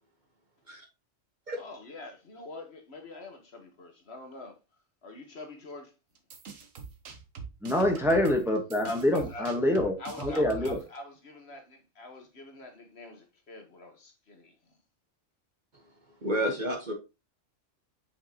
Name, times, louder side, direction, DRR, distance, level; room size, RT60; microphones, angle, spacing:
voice 1, 1.5-4.6 5.0-5.9 8.8-9.5 10.0-14.5, left 2 dB, 55° left, 1.5 m, -44 dB
sound 1, 6.2-11.0, right 5 dB, 90° right, 1.4 m, -43 dB
voice 2, 7.6-10.8, left 1 dB, ahead, 1.0 m, -26 dB
voice 3, 16.2-16.9, equal, 40° right, 1.3 m, -30 dB
5.8 x 5.7 x 2.9 m
omnidirectional pair, 1.3 m